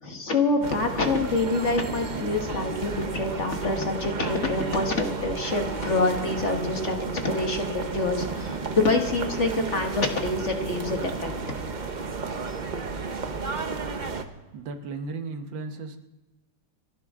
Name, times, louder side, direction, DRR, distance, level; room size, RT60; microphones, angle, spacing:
voice 1, 0.0-11.3, left 3 dB, 40° left, 4 dB, 1.6 m, -26 dB
sound 1, 0.6-14.2, right 4 dB, 40° right, 0.7 m, -33 dB
voice 2, 14.5-16.0, right 3 dB, 90° right, 7 dB, 1.9 m, -35 dB
29.5 x 11.0 x 3.7 m, 1.1 s
omnidirectional pair, 2.0 m